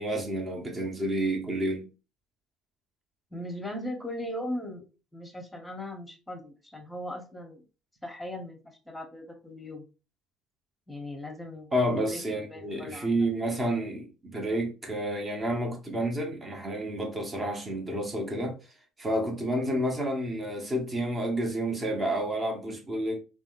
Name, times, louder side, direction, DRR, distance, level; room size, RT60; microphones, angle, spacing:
voice 1, 0.0-1.9 11.7-18.6 19.0-23.2, right 1 dB, 25° right, 1.0 m, -30 dB
voice 2, 3.3-4.8 5.1-7.6 8.0-9.8 10.9-13.1, left 1 dB, 5° left, 1.0 m, -38 dB
3.5 x 2.3 x 2.4 m
hypercardioid pair, 65°, 0 cm